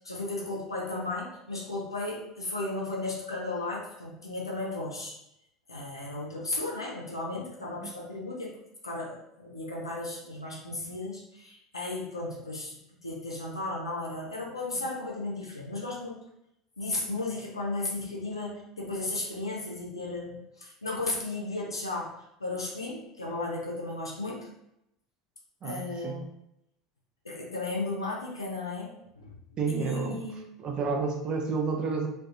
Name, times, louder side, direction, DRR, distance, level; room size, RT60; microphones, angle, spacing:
voice 1, 0.0-5.2 5.7-8.6 8.8-12.7 13.0-16.2 16.8-22.1 22.4-24.5 25.6-26.3 27.2-29.3 29.7-30.4, left 2 dB, 85° left, -3 dB, 0.5 m, -35 dB
voice 2, 25.6-26.2 29.6-30.2 30.6-32.1, right 4 dB, 35° right, 3 dB, 0.4 m, -30 dB
2.3 x 2.2 x 2.7 m, 0.81 s
figure-of-eight pair, 70°, 2 cm